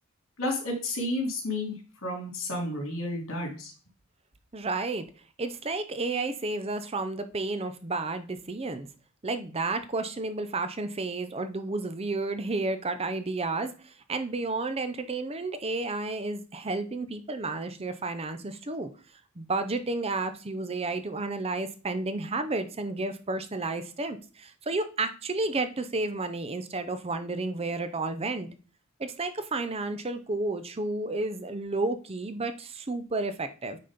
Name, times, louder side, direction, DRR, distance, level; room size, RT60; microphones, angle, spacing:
voice 1, 0.4-3.7, left 1 dB, 65° left, 2 dB, 3.1 m, -31 dB
voice 2, 4.5-5.0 5.4-8.9 9.2-18.9 19.4-28.5 29.0-33.8, right 3 dB, 25° right, 10 dB, 0.6 m, -31 dB
9.1 x 4.2 x 5.1 m, 0.36 s
head